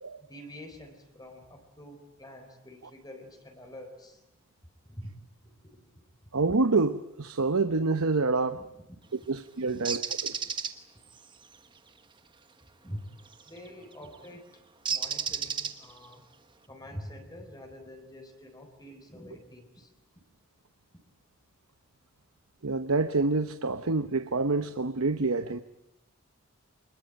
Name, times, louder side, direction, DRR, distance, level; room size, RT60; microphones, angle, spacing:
voice 1, 0.3-4.2 4.8-5.9 8.5-9.0 9.7-10.0 10.4-10.5 12.8-13.1 13.5-14.5 14.9-16.2 16.7-19.9, equal, 15° left, 3.9 m, -46 dB
voice 2, 6.3-8.6 9.3-10.3 22.6-25.6, right 3 dB, 80° right, 0.9 m, -27 dB
Bird, 9.9-10.7 13.3-13.6 14.9-16.1, right 6 dB, 20° right, 1.3 m, -31 dB
26.5 x 21.0 x 9.1 m
head